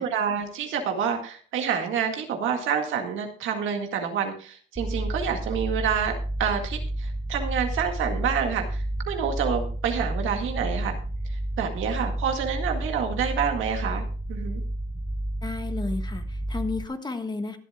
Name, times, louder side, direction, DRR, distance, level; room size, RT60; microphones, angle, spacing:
voice 1, 0.0-6.1 6.4-10.9 11.6-14.0 14.3-14.6, right 7 dB, 85° right, 4 dB, 2.0 m, -28 dB
sound 1, 4.8-16.9, right 1 dB, 5° right, 1.1 m, -31 dB
voice 2, 15.4-17.6, left 3 dB, 20° left, 7 dB, 1.5 m, -32 dB
23.5 x 8.1 x 2.4 m, 0.41 s
cardioid pair, 90°, 20 cm